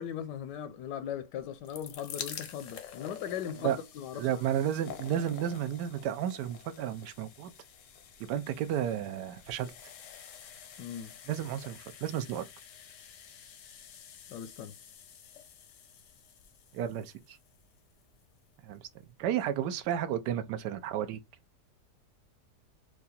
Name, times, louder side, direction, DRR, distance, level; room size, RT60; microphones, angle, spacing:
voice 1, 0.0-4.2 10.8-11.1 14.3-14.7, left 9 dB, 80° left, 1.2 m, -38 dB
sound 1, 1.4-18.4 19.2-19.3 19.5-19.6, left 8 dB, 60° left, 0.8 m, -49 dB
voice 2, 4.2-7.5 8.3-9.7 11.3-12.5 16.7-17.4 18.6-18.9 19.2-21.2, right 10 dB, 75° right, 1.2 m, -32 dB
4.7 x 2.3 x 4.1 m
omnidirectional pair, 1.9 m